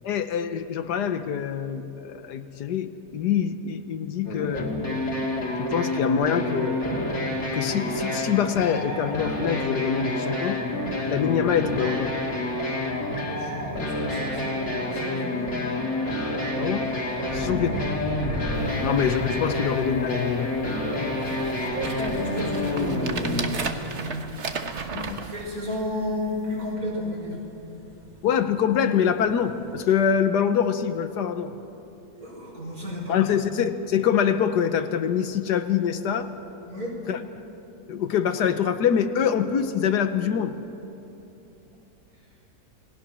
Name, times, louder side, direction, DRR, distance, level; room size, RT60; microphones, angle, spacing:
voice 1, 0.0-4.7 5.6-6.8 7.5-10.6 11.1-12.2 16.6-16.9 17.3-17.9 18.8-20.6 24.9-25.2 28.2-31.5 33.1-36.3 37.1-37.2 37.9-40.6, left 8 dB, 85° left, 10 dB, 1.6 m, -25 dB
sound 1, 4.2-23.4, left 1 dB, 45° left, 2.7 m, -28 dB
voice 2, 13.1-15.5 17.3-17.5 21.6-24.2 25.2-27.3 32.2-33.3 36.7-36.9, left 1 dB, 65° right, -3 dB, 6.0 m, -33 dB
sound 2, 16.8-29.8, equal, 30° right, 2.2 m, -39 dB
sound 3, 18.6-18.7 19.2-19.3 19.5-20.0 20.7-20.8 21.2-26.1 26.6-26.7, right 4 dB, 45° right, 1.4 m, -35 dB
28.0 x 19.0 x 6.3 m, 3.0 s
omnidirectional pair, 1.7 m